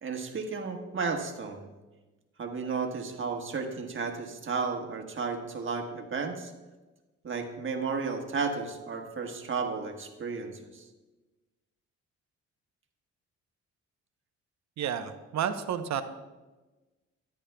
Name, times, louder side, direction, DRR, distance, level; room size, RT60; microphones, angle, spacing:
voice 1, 0.0-1.7 2.4-6.5 7.2-10.8, right 4 dB, 40° right, 3 dB, 1.4 m, -33 dB
voice 2, 14.8-16.0, right 8 dB, 65° right, 9 dB, 0.8 m, -31 dB
13.5 x 10.0 x 2.3 m, 1.2 s
cardioid pair, 90°, 30 cm